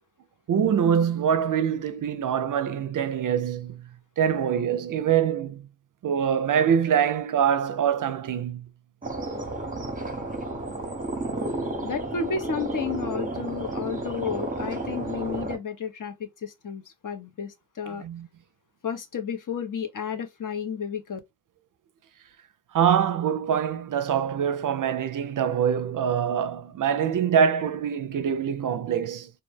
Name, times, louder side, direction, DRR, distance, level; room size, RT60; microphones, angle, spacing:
voice 1, 0.5-3.9 4.2-5.7 6.0-8.7 18.0-18.3 22.7-29.3, right 8 dB, 55° right, 0.5 m, -24 dB
sound 1, 9.0-15.6, right 2 dB, 20° right, 0.7 m, -32 dB
voice 2, 11.8-18.0 18.8-21.2, left 6 dB, 55° left, 0.7 m, -32 dB
2.2 x 2.1 x 3.3 m
cardioid pair, 40°, 39 cm